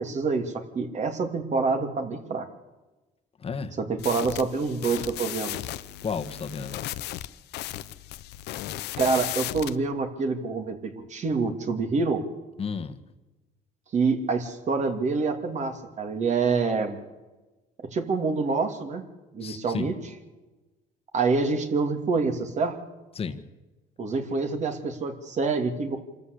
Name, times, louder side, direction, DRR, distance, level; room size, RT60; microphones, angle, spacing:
voice 1, 0.0-2.5 3.8-5.6 9.0-12.2 13.9-17.0 17.9-19.0 19.3-19.9 21.1-22.8 24.0-26.0, right 4 dB, 45° right, 6 dB, 2.8 m, -26 dB
voice 2, 3.4-3.8 6.0-6.9 12.6-13.0 19.4-19.9 23.1-23.4, left 5 dB, 35° left, 8 dB, 1.6 m, -32 dB
sound 1, 4.0-9.8, left 14 dB, 80° left, 0.9 m, -35 dB
26.5 x 13.5 x 8.3 m, 1.1 s
cardioid pair, 110°, 17 cm